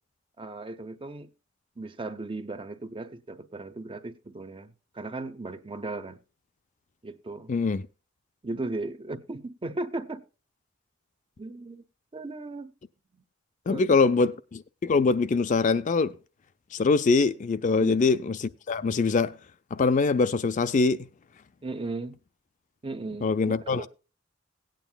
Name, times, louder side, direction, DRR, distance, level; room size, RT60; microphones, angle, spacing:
voice 1, 0.4-1.3 1.8-6.2 7.0-7.5 8.4-10.2 11.4-11.8 12.1-12.7 13.1-13.2 13.7-14.1 17.8-18.0 21.6-22.2 22.8-23.9, right 2 dB, 25° right, 0.7 m, -36 dB
voice 2, 7.5-7.9 13.7-16.1 16.7-19.3 19.7-21.0 23.2-23.9, left 4 dB, 40° left, 0.4 m, -23 dB
18.0 x 9.1 x 2.2 m
head